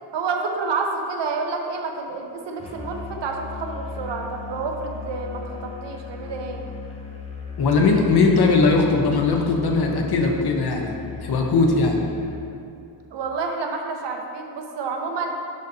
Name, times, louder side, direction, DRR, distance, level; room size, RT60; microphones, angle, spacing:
voice 1, 0.1-6.6 13.1-15.3, right 4 dB, 70° right, 3 dB, 0.7 m, -29 dB
Musical instrument, 2.6-12.5, left 5 dB, 15° left, 0.6 m, -37 dB
voice 2, 7.6-12.0, left 3 dB, 60° left, 2 dB, 0.8 m, -19 dB
10.5 x 4.0 x 2.7 m, 2.5 s
wide cardioid pair, 150°, 44 cm